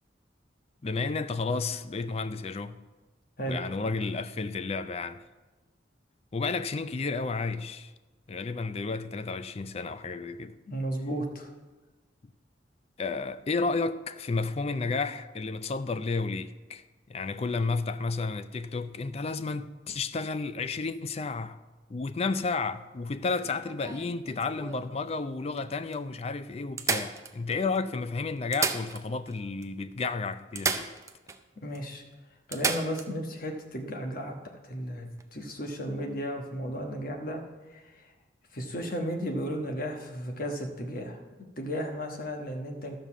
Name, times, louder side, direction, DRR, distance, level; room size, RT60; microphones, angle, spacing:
voice 1, 0.8-2.8 3.5-5.2 6.3-7.9 8.3-10.6 13.0-16.8 17.1-21.6 21.9-30.9, left 4 dB, 35° left, 0.4 m, -32 dB
voice 2, 10.7-11.5 31.6-32.0 32.5-37.4 37.7-38.1 38.5-41.2 41.6-42.9, equal, 50° left, 1.3 m, -34 dB
sound 1, 23.3-24.9 25.6-25.7 25.9-26.0 26.8-27.8 28.4-29.4 29.6-29.7 30.6-31.4 31.7-31.8 32.5-33.1 35.1-35.2, right 4 dB, 15° right, 0.5 m, -33 dB
12.5 x 5.3 x 7.3 m
head